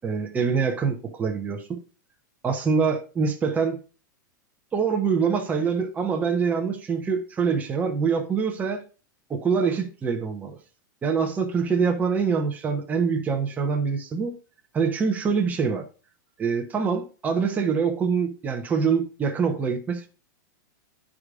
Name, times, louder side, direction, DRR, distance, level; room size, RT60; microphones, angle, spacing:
voice 1, 0.0-1.8 2.4-3.8 4.7-8.8 9.3-10.6 11.0-14.4 14.7-15.8 16.4-20.1, right 5 dB, 15° right, 0.9 m, -25 dB
10.5 x 4.9 x 2.5 m
supercardioid pair, 145°, 10 cm